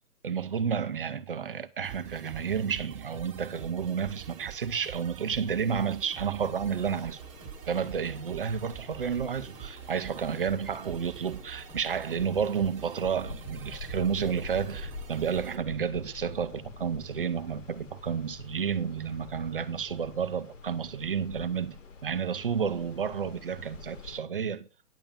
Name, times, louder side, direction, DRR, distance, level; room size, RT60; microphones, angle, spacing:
voice 1, 0.2-7.2 7.7-24.7, right 7 dB, 35° right, 0.6 m, -31 dB
sound 1, 1.8-15.6, right 10 dB, 20° right, 1.6 m, -45 dB
sound 2, 6.4-24.2, left 4 dB, 55° left, 2.0 m, -46 dB
10.5 x 7.2 x 5.2 m
hypercardioid pair, 170°, 46 cm